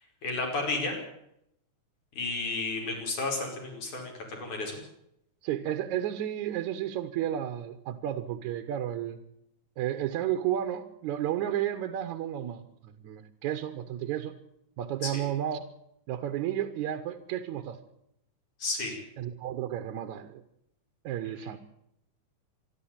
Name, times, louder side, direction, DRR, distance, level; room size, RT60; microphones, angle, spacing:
voice 1, 0.2-1.0 2.1-4.8 15.0-15.2 18.6-19.0, left 3 dB, 70° left, 1 dB, 6.9 m, -32 dB
voice 2, 5.4-9.2 9.8-14.4 14.8-15.7 16.1-17.8 19.2-20.4 21.0-21.6, right 11 dB, 70° right, 9 dB, 2.4 m, -32 dB
26.0 x 12.0 x 8.8 m, 0.78 s
omnidirectional pair, 3.6 m